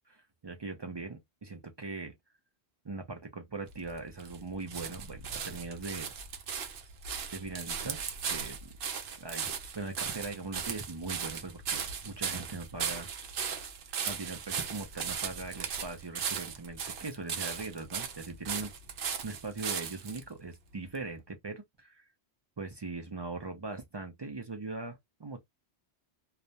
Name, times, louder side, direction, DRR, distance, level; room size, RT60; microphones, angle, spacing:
voice 1, 0.1-2.1 2.8-6.1 7.3-8.0 8.3-8.7 9.1-13.1 14.1-18.7 19.2-22.1 22.6-25.4, right 3 dB, 45° right, 0.3 m, -40 dB
sound 1, 3.7-20.2 20.9-21.0, right 7 dB, 60° right, 0.7 m, -37 dB
2.3 x 2.1 x 2.7 m
omnidirectional pair, 1.1 m